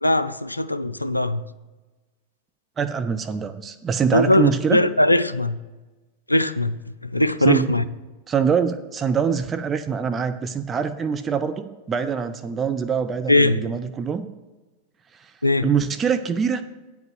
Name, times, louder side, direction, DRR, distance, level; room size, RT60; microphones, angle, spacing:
voice 1, 0.0-1.4 4.1-5.6 6.3-7.8 13.3-13.7 15.4-15.7, left 1 dB, 85° left, 0.4 m, -20 dB
voice 2, 2.8-4.8 7.4-7.7 8.3-14.2 15.2-15.3 15.6-16.6, right 6 dB, 20° right, 0.5 m, -24 dB
9.1 x 5.2 x 7.6 m
figure-of-eight pair, 90°, 0 cm